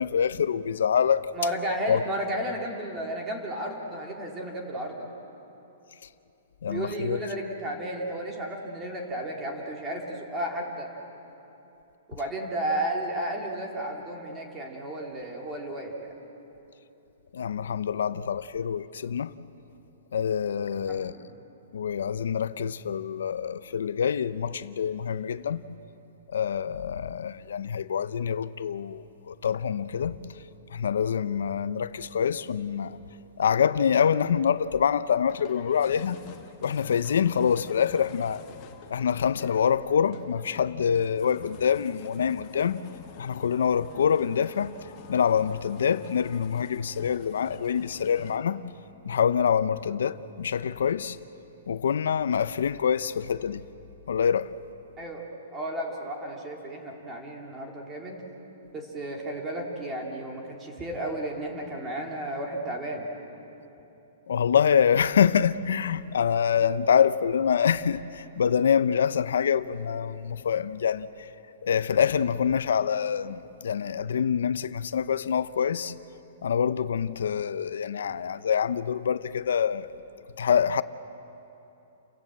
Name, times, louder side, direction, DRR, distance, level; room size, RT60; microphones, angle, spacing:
voice 1, 0.0-1.3 1.9-2.0 6.6-7.2 17.3-19.3 20.1-21.1 21.7-25.6 26.3-30.2 30.7-33.0 33.4-36.2 36.6-38.4 38.9-42.8 43.2-44.8 45.1-48.6 49.1-51.2 51.7-53.6 54.1-54.6 64.3-71.3 71.6-75.9 76.4-79.9 80.4-80.8, left 7 dB, 85° left, 0.6 m, -25 dB
voice 2, 1.3-5.1 6.7-10.9 12.1-15.9 20.9-21.2 55.0-55.2 55.5-58.2 58.7-63.1, right 1 dB, 15° right, 2.7 m, -33 dB
sound 1, 35.3-48.4, left 8 dB, 30° left, 1.2 m, -48 dB
29.5 x 16.0 x 7.8 m
hypercardioid pair, 170°, 0 cm